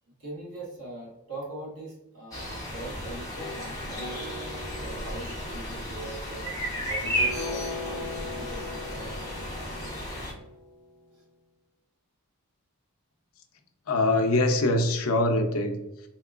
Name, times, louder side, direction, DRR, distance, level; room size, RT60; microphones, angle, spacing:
voice 1, 0.0-4.2 4.7-9.3 11.1-11.2, right 2 dB, 80° right, -4 dB, 1.3 m, -42 dB
sound 1, 2.3-10.3, equal, 15° left, 0.7 m, -34 dB
sound 2, 3.4-11.1, left 3 dB, 50° right, 1.0 m, -40 dB
voice 2, 13.9-16.1, left 2 dB, 70° left, 4 dB, 0.5 m, -24 dB
3.6 x 2.9 x 2.4 m, 0.90 s
head